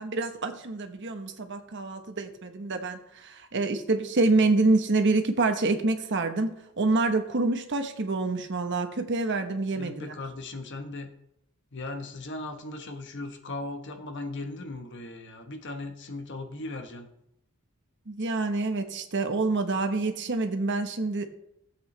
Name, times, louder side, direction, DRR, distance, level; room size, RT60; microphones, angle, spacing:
voice 1, 0.0-10.2 18.1-21.3, right 3 dB, 55° right, 7 dB, 1.1 m, -27 dB
voice 2, 9.7-11.1 11.7-17.1, left 2 dB, 55° left, 6 dB, 1.2 m, -38 dB
15.0 x 7.9 x 3.3 m, 0.78 s
head